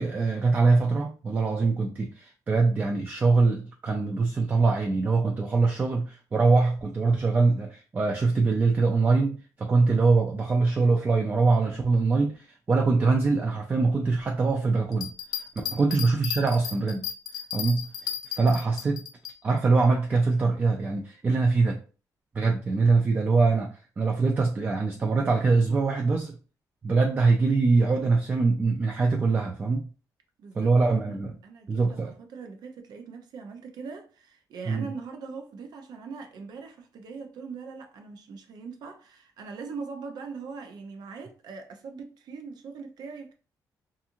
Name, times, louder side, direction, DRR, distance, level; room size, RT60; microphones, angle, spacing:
voice 1, 0.0-15.1 15.7-17.1 17.5-19.1 19.4-21.8 22.4-26.4 26.8-29.9 30.6-31.4 31.7-32.1 34.7-34.9, right 3 dB, 25° right, 0.3 m, -23 dB
sound 1, 14.9-19.3, left 9 dB, 75° left, 0.4 m, -34 dB
voice 2, 30.4-31.2 31.4-43.3, right 5 dB, 75° right, 0.6 m, -41 dB
2.5 x 2.4 x 2.8 m
cardioid pair, 145°, 7 cm